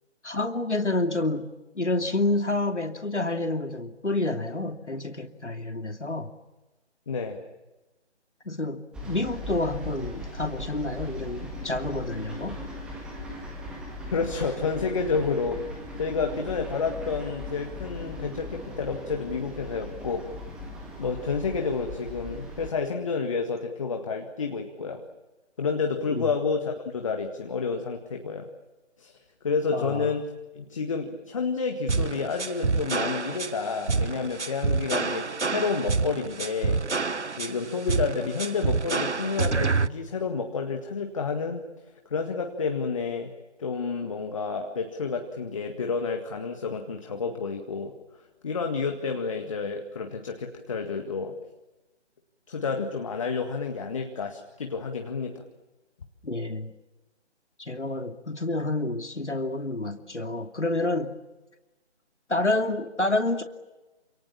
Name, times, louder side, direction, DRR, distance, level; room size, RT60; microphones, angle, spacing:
voice 1, 0.2-1.5 1.7-6.3 8.5-12.6 26.1-26.3 29.7-30.1 56.2-56.7 57.6-61.1 62.3-63.4, left 2 dB, 75° left, 7 dB, 2.7 m, -28 dB
voice 2, 7.1-7.4 14.1-15.7 16.0-20.3 21.0-25.0 25.6-28.5 29.0-29.2 29.4-30.3 30.6-36.8 37.3-41.6 42.1-43.3 43.6-47.9 48.4-51.4 52.5-55.4, left 5 dB, 30° left, 5 dB, 1.9 m, -30 dB
sound 1, 8.9-22.7, left 1 dB, ahead, 1.7 m, -39 dB
sound 2, 31.9-39.9, right 4 dB, 75° right, 1.1 m, -27 dB
28.5 x 27.5 x 7.3 m, 1.1 s
figure-of-eight pair, 155°, 35 cm